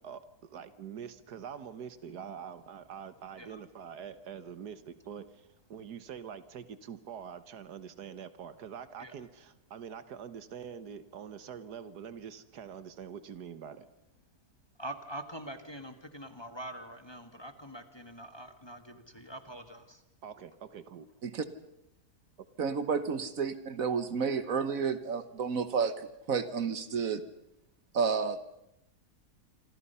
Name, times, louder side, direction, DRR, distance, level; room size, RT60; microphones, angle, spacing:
voice 1, 0.0-13.9 20.2-21.1, right 7 dB, 75° right, 13 dB, 1.7 m, -45 dB
voice 2, 14.8-20.0, right 1 dB, 15° left, 8 dB, 1.4 m, -44 dB
voice 3, 22.6-25.9 26.3-27.2 27.9-28.4, right 6 dB, 60° right, 12 dB, 1.5 m, -30 dB
27.0 x 25.5 x 5.6 m, 0.83 s
omnidirectional pair, 1.7 m